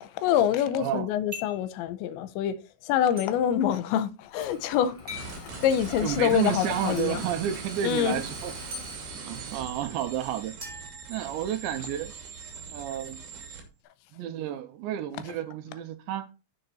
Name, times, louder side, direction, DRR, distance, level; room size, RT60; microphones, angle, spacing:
voice 1, 0.0-2.6 2.8-5.0 5.4-7.2 7.8-8.2, left 10 dB, 85° left, 2.9 m, -26 dB
voice 2, 0.7-1.1 6.0-8.5 9.1-10.6 11.1-12.1 12.7-13.2 14.1-16.3, right 11 dB, 80° right, 3.1 m, -31 dB
sound 1, 1.3-1.7 3.2-3.3 5.1-5.4 7.0-7.1 8.7-8.9 10.6-11.7, left 2 dB, 15° right, 3.8 m, -41 dB
Engine starting, 4.3-9.7, left 4 dB, 40° left, 3.0 m, -44 dB
sound 2, 5.1-13.7, right 5 dB, 60° right, 4.3 m, -41 dB
10.5 x 6.7 x 4.0 m
omnidirectional pair, 5.4 m